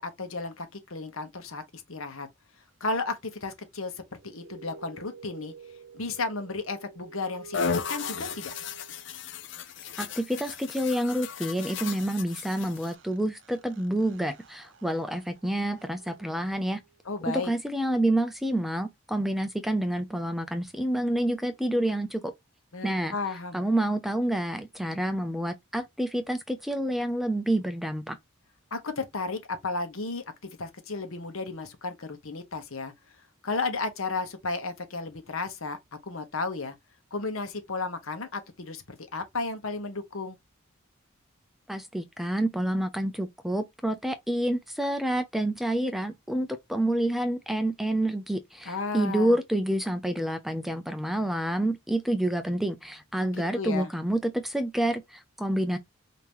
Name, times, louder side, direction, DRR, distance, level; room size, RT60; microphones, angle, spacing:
voice 1, 0.0-2.3 2.8-3.9 4.2-5.5 5.9-8.5 17.0-17.5 22.7-23.6 28.7-32.9 33.4-36.8 37.1-38.8 39.1-40.4 48.7-49.4 53.2-53.9, left 3 dB, 80° left, 1.1 m, -33 dB
sound 1, 4.0-9.4 11.3-11.4 11.5-17.0, right 5 dB, 60° right, 0.7 m, -50 dB
sound 2, 7.5-12.9, left 5 dB, 55° left, 0.5 m, -35 dB
voice 2, 10.0-16.8 17.3-22.3 22.8-23.1 23.5-28.2 41.7-55.8, right 1 dB, ahead, 0.4 m, -28 dB
5.4 x 2.9 x 3.0 m
head